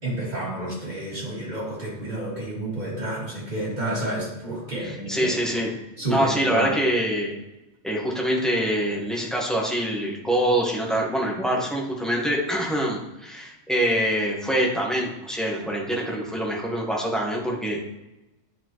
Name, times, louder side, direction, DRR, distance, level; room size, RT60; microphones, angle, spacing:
voice 1, 0.0-5.6 6.0-6.7, right 1 dB, 40° right, -5 dB, 2.3 m, -30 dB
voice 2, 4.8-5.7 6.1-7.3 7.8-17.8, right 1 dB, ahead, -3 dB, 1.4 m, -25 dB
9.9 x 4.4 x 3.1 m, 0.97 s
omnidirectional pair, 1.2 m